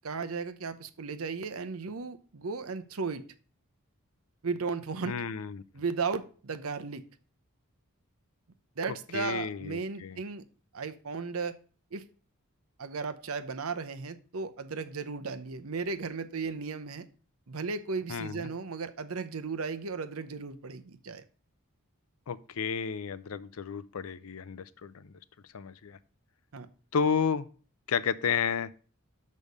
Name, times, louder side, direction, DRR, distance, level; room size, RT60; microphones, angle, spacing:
voice 1, 0.0-3.2 4.4-5.2 5.7-7.0 8.8-10.4 10.7-11.6 11.9-12.0 12.8-17.1 17.5-21.3 26.5-26.7, right 4 dB, 80° right, 10 dB, 0.8 m, -35 dB
voice 2, 5.0-5.6 9.1-10.2 18.1-18.5 22.3-25.1 25.5-26.0 26.9-27.5 27.9-28.7, left 6 dB, 80° left, 16 dB, 0.5 m, -32 dB
6.5 x 5.4 x 5.3 m, 0.39 s
head